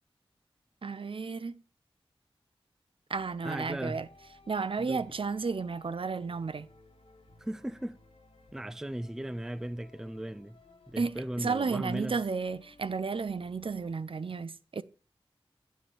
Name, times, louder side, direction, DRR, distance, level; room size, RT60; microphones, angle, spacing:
voice 1, 0.8-1.6 3.1-4.1 4.5-6.7 11.0-14.8, right 4 dB, 65° right, 0.5 m, -33 dB
sound 1, 3.1-14.0, left 2 dB, 75° left, 1.6 m, -59 dB
voice 2, 3.4-4.0 4.8-5.0 7.4-8.0 8.5-10.6 10.9-12.2, right 1 dB, 5° right, 0.3 m, -37 dB
9.2 x 6.4 x 4.6 m
wide cardioid pair, 65°, 10 cm